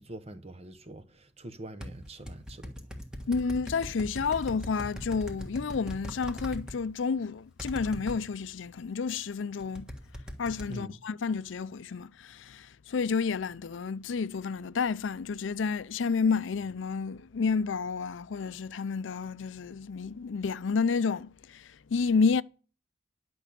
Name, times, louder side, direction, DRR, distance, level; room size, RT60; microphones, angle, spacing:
voice 1, 0.0-2.9 10.7-11.0, right 1 dB, 35° right, 0.9 m, -44 dB
sound 1, 1.8-6.7 7.6-8.2 9.6-10.7, equal, 5° right, 1.5 m, -40 dB
voice 2, 3.3-9.9 10.4-22.4, left 5 dB, 90° left, 0.5 m, -30 dB
10.5 x 6.2 x 8.5 m
head